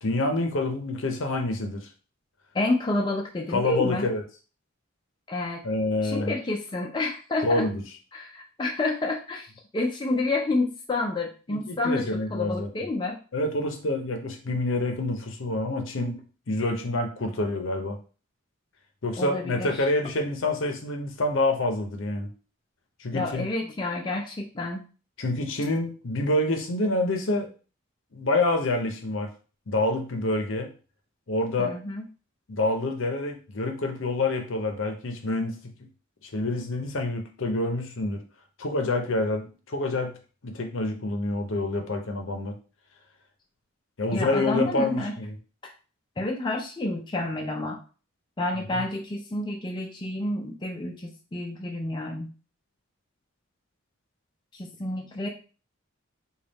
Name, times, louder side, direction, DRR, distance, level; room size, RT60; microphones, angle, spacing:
voice 1, 0.0-1.9 3.5-4.2 5.6-6.3 7.4-7.8 11.5-12.7 13.3-16.2 16.5-18.0 19.0-22.3 23.0-23.5 25.2-27.5 28.1-29.3 29.7-30.7 31.3-31.7 32.5-35.5 36.2-38.2 38.6-40.2 40.4-42.5 44.0-45.4 48.7-48.9, left 2 dB, 65° left, 4 dB, 0.7 m, -27 dB
voice 2, 2.5-4.1 5.3-5.6 6.0-7.6 8.1-9.5 9.7-13.2 19.2-19.8 23.1-24.8 31.6-32.0 44.1-45.1 45.6-45.7 46.2-47.8 48.4-52.3 54.5-55.3, left 2 dB, 20° left, 0 dB, 0.4 m, -29 dB
4.0 x 2.3 x 3.4 m, 0.37 s
head